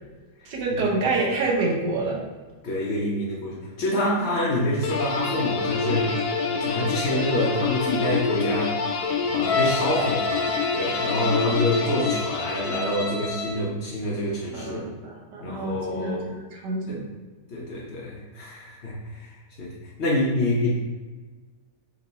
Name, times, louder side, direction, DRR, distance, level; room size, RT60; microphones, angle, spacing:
voice 1, 0.4-2.2 14.5-17.0, right 3 dB, 80° right, -2 dB, 1.5 m, -27 dB
voice 2, 2.6-6.1 6.6-9.0 9.3-10.5 10.7-14.8 15.4-16.3 16.9-17.0 17.5-19.7 20.0-20.7, left 1 dB, 65° left, -5 dB, 0.6 m, -27 dB
sound 1, 4.8-13.2, left 5 dB, 80° left, 1.2 m, -27 dB
Bowed string instrument, 9.4-13.6, left 4 dB, 45° left, 0.9 m, -30 dB
3.5 x 3.0 x 4.1 m, 1.3 s
omnidirectional pair, 1.8 m